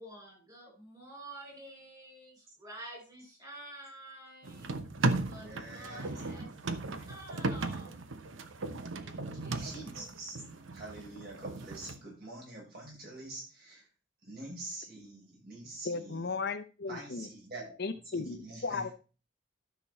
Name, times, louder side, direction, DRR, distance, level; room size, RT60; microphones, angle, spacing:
voice 1, 0.0-4.7 5.3-6.5 7.0-7.9 9.0-10.1, right 1 dB, 20° right, 0 dB, 4.4 m, -49 dB
sound 1, 4.4-12.0, right 2 dB, 85° right, 0.9 m, -36 dB
voice 2, 5.4-6.1 9.5-10.4 10.7-13.9 14.2-16.3 16.9-18.8, right 2 dB, 50° right, -3 dB, 6.4 m, -46 dB
voice 3, 15.8-17.3 17.8-18.9, left 4 dB, 55° left, 9 dB, 0.8 m, -36 dB
12.5 x 6.2 x 4.3 m, 0.34 s
head